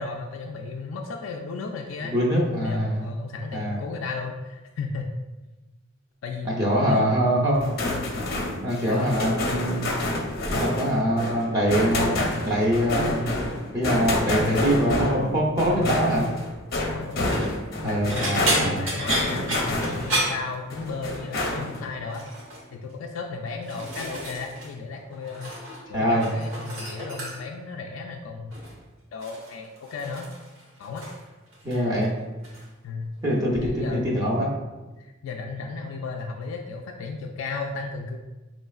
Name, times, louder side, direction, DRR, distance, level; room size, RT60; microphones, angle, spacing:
voice 1, 0.0-2.1 2.6-5.1 6.2-7.5 7.8-8.1 8.9-9.1 14.4-14.8 15.7-16.0 16.8-17.4 17.8-22.3 22.7-25.6 25.9-28.6 29.1-30.3 30.8-31.1 32.8-33.1 33.6-34.2 35.0-38.2, left 4 dB, 80° left, 1 dB, 0.3 m, -34 dB
voice 2, 2.1-3.0 3.5-3.8 6.4-7.6 8.6-9.8 10.4-13.3 13.7-16.3 17.8-18.8 25.9-26.2 31.6-32.1 33.2-34.5, equal, 20° right, -4 dB, 0.7 m, -23 dB
sound 1, 7.5-20.3 20.7-21.9, left 1 dB, 50° left, 0.7 m, -28 dB
sound 2, 17.1-17.5 18.1-21.1 21.4-21.8 22.1-22.6 23.3-24.7 25.0-25.8 26.1-27.6 28.5-28.8 29.2-31.3 31.5-32.1 32.4-32.6 33.9-34.0, right 1 dB, 75° right, 1.2 m, -31 dB
5.4 x 3.1 x 2.4 m, 1.1 s
head